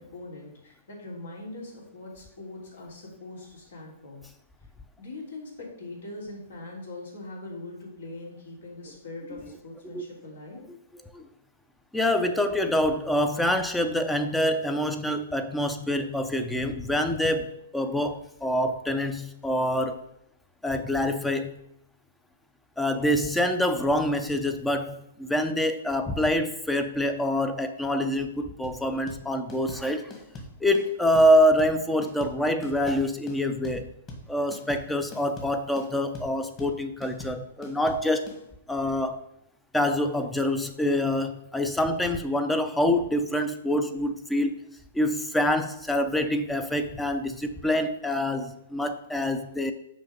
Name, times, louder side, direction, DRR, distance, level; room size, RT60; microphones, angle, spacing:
voice 1, 0.0-4.2 5.0-10.6, left 2 dB, 80° left, -2 dB, 2.9 m, -41 dB
voice 2, 11.9-20.0 20.6-21.5 22.8-30.1 30.6-33.9 34.3-38.3 38.7-39.2 39.7-44.6 44.9-49.7, left 1 dB, 5° left, 8 dB, 0.5 m, -26 dB
sound 1, 28.6-38.4, left 2 dB, 30° left, 1.6 m, -42 dB
6.1 x 4.6 x 5.1 m, 0.76 s
hypercardioid pair, 130°, 0 cm